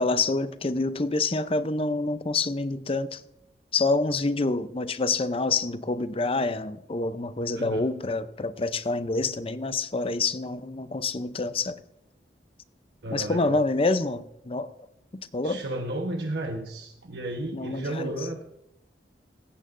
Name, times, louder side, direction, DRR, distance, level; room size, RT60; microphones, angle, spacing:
voice 1, 0.0-3.2 3.7-11.8 13.1-14.7 15.3-15.6 17.5-18.1, left 3 dB, 30° left, 12 dB, 0.6 m, -27 dB
voice 2, 13.0-13.6 15.4-18.4, right 1 dB, 70° right, 3 dB, 1.2 m, -33 dB
17.0 x 15.0 x 2.6 m, 0.83 s
head